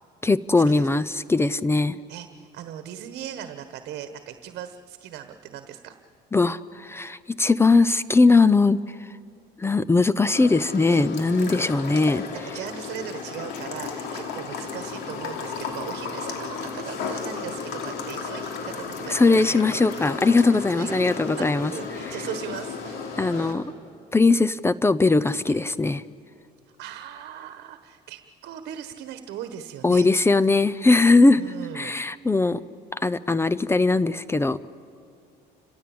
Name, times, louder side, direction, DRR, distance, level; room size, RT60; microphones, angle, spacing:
voice 1, 0.2-1.9 6.3-8.8 9.6-12.2 19.1-21.7 23.2-23.7 24.1-26.0 29.8-31.4 31.7-32.6 32.9-34.7, left 3 dB, 15° left, 17 dB, 0.5 m, -20 dB
voice 2, 2.1-6.0 10.9-11.1 11.4-11.8 12.3-20.4 20.7-23.6 25.5-25.7 26.8-30.1 31.3-31.9, right 10 dB, 75° right, 9 dB, 1.2 m, -39 dB
sound 1, 10.3-23.5, left 5 dB, 85° left, 2.9 m, -34 dB
29.5 x 16.5 x 8.7 m, 2.5 s
cardioid pair, 110°, 17 cm